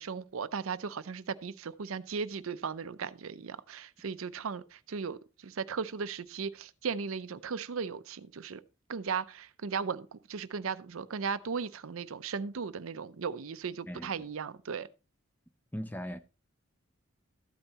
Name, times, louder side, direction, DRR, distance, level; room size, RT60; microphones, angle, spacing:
voice 1, 0.0-8.6 8.9-14.9, right 5 dB, 80° right, 0.6 m, -37 dB
voice 2, 15.7-16.2, equal, 10° left, 0.6 m, -38 dB
13.5 x 8.9 x 2.9 m
head